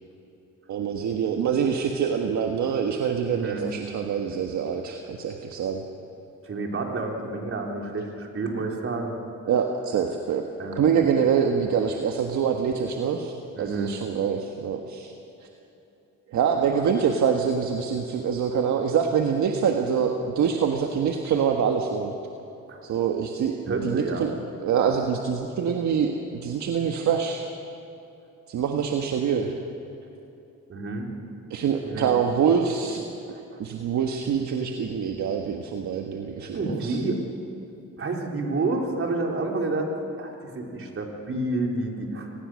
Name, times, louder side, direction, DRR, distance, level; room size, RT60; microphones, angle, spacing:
voice 1, 0.7-5.8 9.5-10.4 10.7-13.3 13.6-15.1 16.3-22.1 22.8-24.3 24.6-27.5 28.5-29.6 31.5-33.0 33.6-37.0, right 7 dB, 70° right, 3 dB, 1.6 m, -25 dB
voice 2, 3.3-3.7 6.4-9.2 10.6-10.9 13.6-13.9 22.7-22.9 23.7-24.3 30.7-31.1 31.8-32.1 33.5-33.6 36.4-37.2 38.0-42.3, right 2 dB, 45° right, 0 dB, 4.3 m, -29 dB
26.5 x 19.5 x 6.5 m, 2.9 s
cardioid pair, 90°, 30 cm